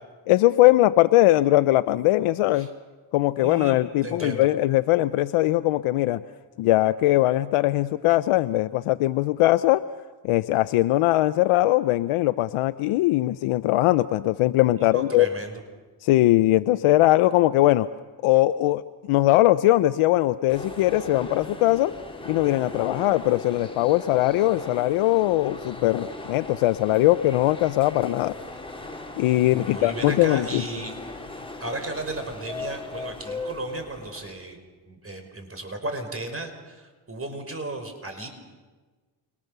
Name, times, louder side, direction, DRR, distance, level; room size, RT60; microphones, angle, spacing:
voice 1, 0.3-2.7 3.1-6.2 6.6-9.8 10.2-15.3 16.0-17.9 18.2-18.8 19.1-21.9 22.3-28.3 29.2-30.6, left 16 dB, 90° left, 12 dB, 0.7 m, -20 dB
voice 2, 3.4-3.8 4.0-4.5 14.9-15.5 29.5-31.3 31.6-34.6 34.9-38.3, right 2 dB, 25° right, 6 dB, 5.5 m, -35 dB
sound 1, 20.5-34.3, left 2 dB, 10° left, 4.6 m, -38 dB
29.0 x 26.0 x 6.8 m, 1.4 s
cardioid pair, 80°, 49 cm